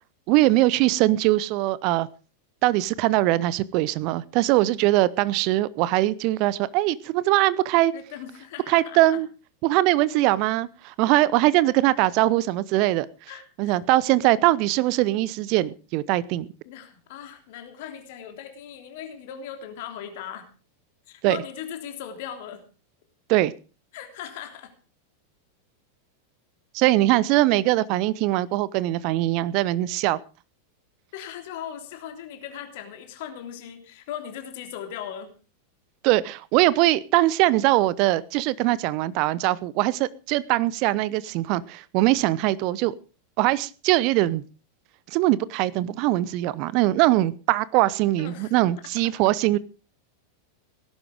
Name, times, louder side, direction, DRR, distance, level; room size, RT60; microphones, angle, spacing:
voice 1, 0.3-2.1 2.6-7.9 8.7-9.3 9.6-13.1 13.6-16.5 21.2-21.4 23.3-23.5 26.7-30.2 36.0-42.9 43.4-44.4 45.1-49.6, right 16 dB, 45° right, 20 dB, 0.8 m, -21 dB
voice 2, 7.9-9.2 13.3-13.4 16.6-20.5 21.1-22.6 23.9-24.7 31.1-35.3 48.2-48.5, left 9 dB, 50° left, 6 dB, 3.2 m, -38 dB
18.0 x 11.0 x 5.0 m, 0.36 s
figure-of-eight pair, 90°, 0 cm